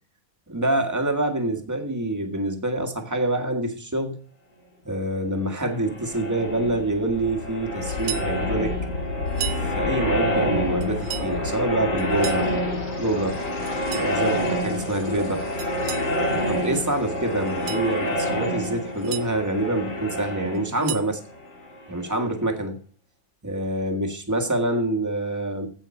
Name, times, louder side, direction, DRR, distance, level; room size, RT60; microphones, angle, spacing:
voice 1, 0.5-4.2 4.8-8.8 9.7-12.6 13.0-13.4 13.9-15.4 16.3-21.2 21.9-22.8 23.4-25.7, right 1 dB, 10° right, 3 dB, 1.5 m, -26 dB
sound 1, 5.7-22.3, left 1 dB, 65° left, 5.1 m, -28 dB
sound 2, 7.9-8.3 9.3-9.7 10.8-11.3 12.0-12.5 13.6-14.1 15.6-16.1 17.4-17.9 18.7-19.3 20.5-21.1, right 11 dB, 75° right, 1.5 m, -35 dB
16.0 x 5.8 x 4.4 m, 0.43 s
omnidirectional pair, 2.1 m